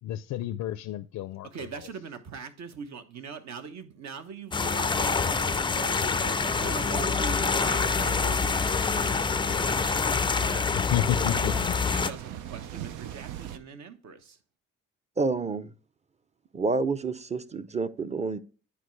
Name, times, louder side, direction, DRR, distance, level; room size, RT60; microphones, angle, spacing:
voice 1, 0.0-1.5 10.7-11.7, left 12 dB, 80° left, 0.5 m, -30 dB
voice 2, 1.5-10.0 10.2-10.8 11.1-14.4, right 6 dB, 65° right, 1.2 m, -42 dB
sound 1, 4.5-12.1, left 5 dB, 15° left, 0.4 m, -26 dB
sound 2, 6.6-13.6, right 10 dB, 85° right, 0.6 m, -42 dB
voice 3, 15.2-15.7 16.5-18.4, right 4 dB, 20° right, 0.6 m, -28 dB
10.0 x 4.8 x 3.2 m
cardioid pair, 90°, 30 cm